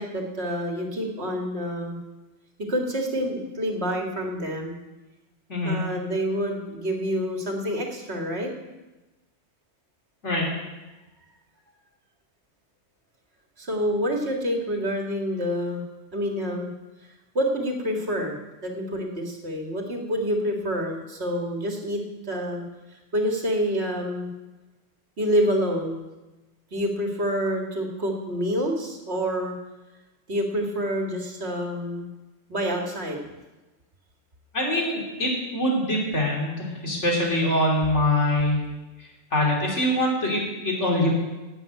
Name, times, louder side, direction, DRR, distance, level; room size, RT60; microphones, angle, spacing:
voice 1, 0.0-2.0 2.7-4.7 5.6-8.5 13.6-15.8 16.1-16.7 17.3-22.6 23.1-24.3 25.2-26.1 26.7-29.5 30.3-32.1 32.5-33.3, equal, 55° right, 1 dB, 2.2 m, -27 dB
voice 2, 34.5-38.7 39.0-41.1, left 1 dB, 65° left, -2 dB, 3.6 m, -24 dB
11.5 x 8.0 x 9.0 m, 1.1 s
omnidirectional pair, 1.3 m